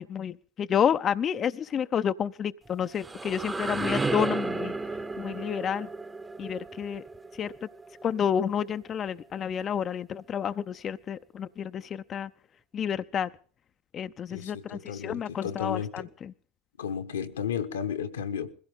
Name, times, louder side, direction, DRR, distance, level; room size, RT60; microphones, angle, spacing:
voice 1, 0.0-4.7 5.2-5.9 6.4-7.0 7.4-7.5 8.0-12.3 12.7-13.3 13.9-16.3, left 8 dB, 35° left, 11 dB, 0.6 m, -30 dB
sound 1, 2.7-8.4, right 3 dB, 15° right, 1.1 m, -33 dB
voice 2, 14.3-16.1 16.8-18.5, left 7 dB, 90° left, 9 dB, 1.6 m, -33 dB
21.5 x 16.0 x 3.7 m, 0.43 s
hypercardioid pair, 90°, 0 cm